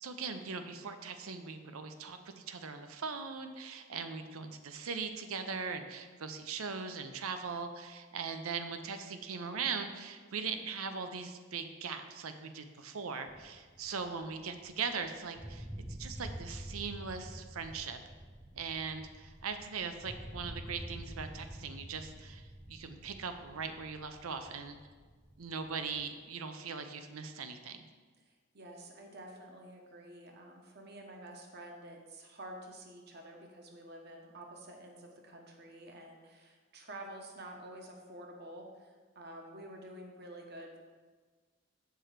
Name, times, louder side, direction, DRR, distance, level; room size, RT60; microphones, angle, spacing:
voice 1, 0.0-15.7 16.0-18.0 18.5-24.8 25.4-27.9, right 5 dB, 80° right, 8 dB, 0.6 m, -40 dB
sound 1, 13.3-15.1 15.3-26.1, right 1 dB, 5° right, 0.4 m, -48 dB
voice 2, 28.2-40.8, right 1 dB, 50° right, 2 dB, 1.0 m, -49 dB
6.9 x 4.5 x 6.5 m, 1.4 s
head